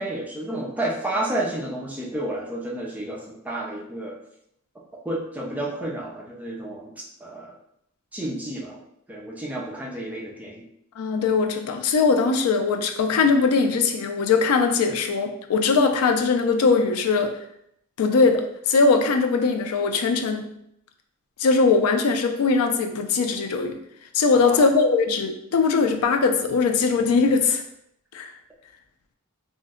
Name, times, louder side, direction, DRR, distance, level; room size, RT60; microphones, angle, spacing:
voice 1, 0.0-4.2 5.0-6.9 7.2-7.5 8.1-8.8 9.1-10.6 24.3-24.7, right 1 dB, 5° right, -3 dB, 0.4 m, -31 dB
voice 2, 11.0-17.3 18.0-20.5 21.4-23.8 24.1-27.6 28.1-28.3, left 4 dB, 75° left, 6 dB, 0.4 m, -21 dB
2.6 x 2.1 x 3.5 m, 0.74 s
head